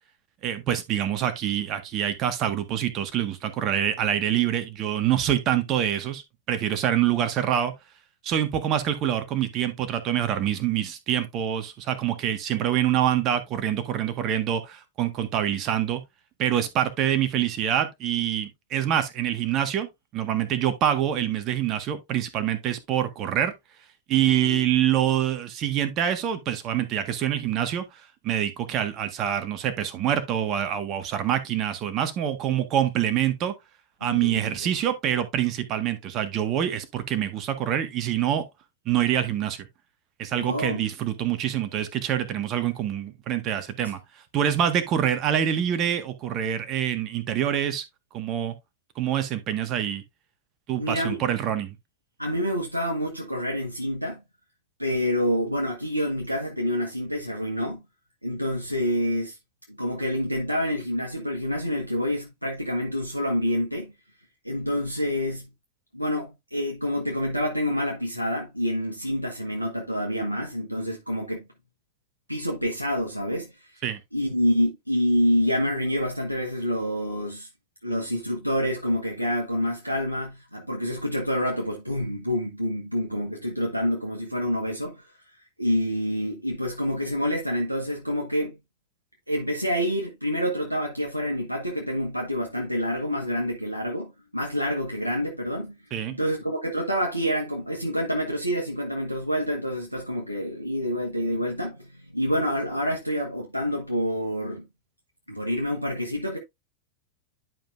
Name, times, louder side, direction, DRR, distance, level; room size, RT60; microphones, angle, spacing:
voice 1, 0.4-7.7 8.2-16.0 16.4-23.5 24.1-27.8 28.2-33.5 34.0-38.4 38.8-39.7 40.2-44.0 44.3-47.8 48.1-48.5 48.9-50.0 50.7-51.7 73.8-74.0 95.9-96.2, right 10 dB, 35° right, 1.5 m, -25 dB
voice 2, 24.2-24.6 34.0-34.7 40.3-40.9 50.8-51.2 52.2-54.2 54.8-57.8 58.2-59.4 59.7-63.9 64.4-65.5 65.9-71.5 72.3-73.8 74.1-77.5 77.8-85.1 85.6-88.6 89.3-95.7 96.1-104.6 105.3-106.4, equal, 90° right, 1.3 m, -27 dB
11.0 x 5.3 x 2.5 m
figure-of-eight pair, 90°, 0 cm